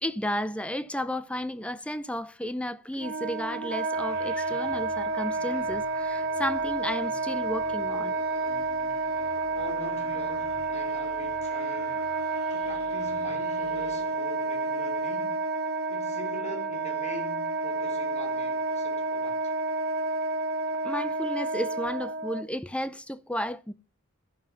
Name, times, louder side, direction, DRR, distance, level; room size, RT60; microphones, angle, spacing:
voice 1, 0.0-8.1 20.8-23.7, equal, 5° left, 0.6 m, -33 dB
Wind instrument woodwind instrument, 2.9-22.4, right 3 dB, 45° right, 1.5 m, -30 dB
sound 1, 3.9-14.5, left 2 dB, 70° left, 4.3 m, -49 dB
voice 2, 9.5-12.1 12.5-15.4 15.9-19.4, left 1 dB, 30° left, 3.5 m, -43 dB
12.0 x 11.0 x 5.7 m
head